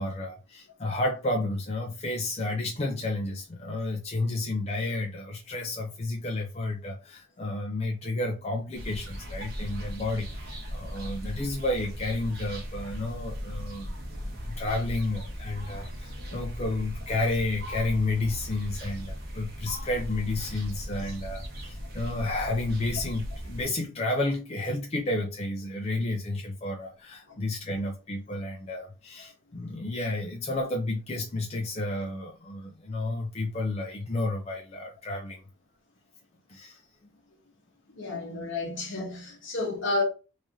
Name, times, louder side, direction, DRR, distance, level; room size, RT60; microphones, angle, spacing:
voice 1, 0.0-35.4 36.5-36.8, left 2 dB, 30° left, 0.5 m, -31 dB
sound 1, 8.7-23.7, equal, 50° right, 1.1 m, -38 dB
voice 2, 37.9-40.0, left 2 dB, 65° left, 1.2 m, -31 dB
3.5 x 3.3 x 2.7 m
head